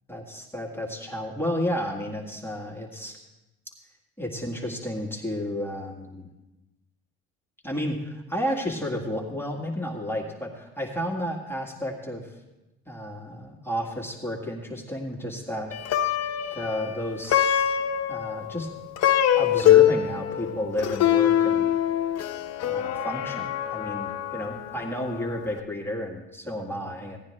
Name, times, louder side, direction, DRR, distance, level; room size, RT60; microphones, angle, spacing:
voice 1, 0.1-3.2 4.2-6.3 7.6-12.3 12.9-15.7 16.5-17.8 18.1-18.7 19.3-21.8 22.6-27.2, equal, 5° left, -2 dB, 1.8 m, -32 dB
Plucked string instrument, 15.7-25.1, left 11 dB, 55° left, 0.8 m, -24 dB
16.5 x 9.4 x 3.3 m, 0.99 s
supercardioid pair, 75°, 32 cm